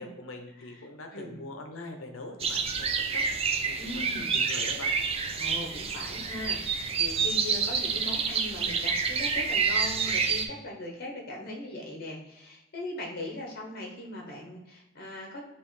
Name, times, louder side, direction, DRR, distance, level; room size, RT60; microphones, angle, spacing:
voice 1, 0.0-3.3 3.6-4.9, left 2 dB, 75° left, 4 dB, 0.7 m, -43 dB
sound 1, 2.4-10.4, right 5 dB, 30° right, 0.3 m, -28 dB
voice 2, 3.8-4.4 5.4-15.4, left 1 dB, 50° left, -1 dB, 0.9 m, -39 dB
5.3 x 3.0 x 3.2 m, 0.99 s
head